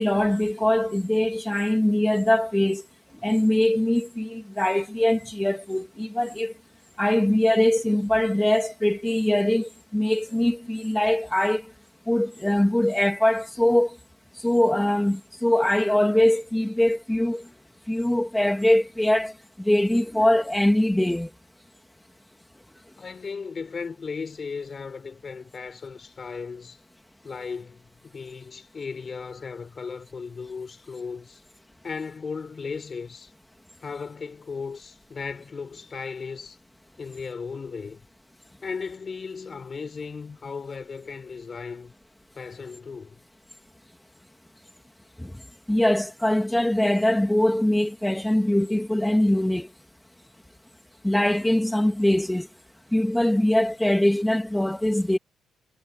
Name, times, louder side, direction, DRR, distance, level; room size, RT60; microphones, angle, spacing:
voice 1, 0.0-2.8 3.2-6.5 7.0-11.6 12.1-14.0 14.4-17.4 17.9-19.3 19.6-21.3 45.2-45.3 45.7-49.7 51.0-52.5 52.9-55.2, left 1 dB, 5° left, 2.1 m, -22 dB
voice 2, 23.0-26.8 27.2-31.4 31.8-33.3 33.8-36.6 37.0-38.0 38.6-41.9 42.3-43.2, left 5 dB, 40° left, 4.6 m, -36 dB
cardioid pair, 90°, 0 cm